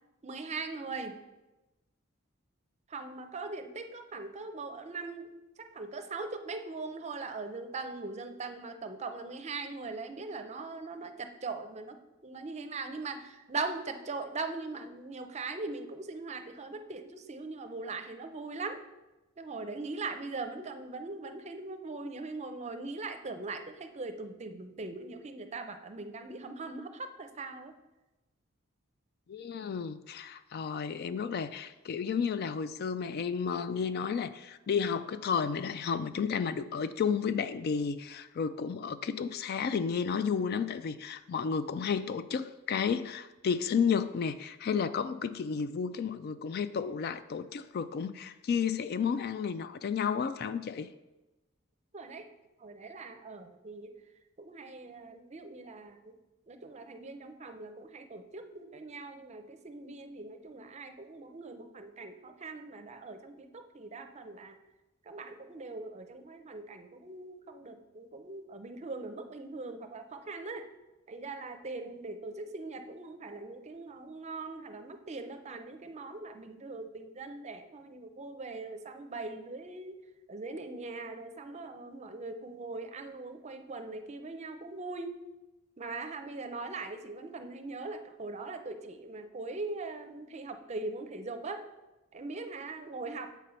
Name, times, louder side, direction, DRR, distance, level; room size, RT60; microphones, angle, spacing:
voice 1, 0.2-1.2 2.9-5.3 5.6-12.0 12.2-18.8 19.4-27.8 51.9-52.3 52.6-53.9 54.4-56.1 56.5-64.6 65.1-70.7 71.1-79.9 80.3-85.2 85.8-91.7 92.1-93.3, right 3 dB, 35° right, 0.6 m, -41 dB
voice 2, 29.3-50.9, left 6 dB, 50° left, 0.3 m, -32 dB
7.3 x 5.4 x 4.3 m
head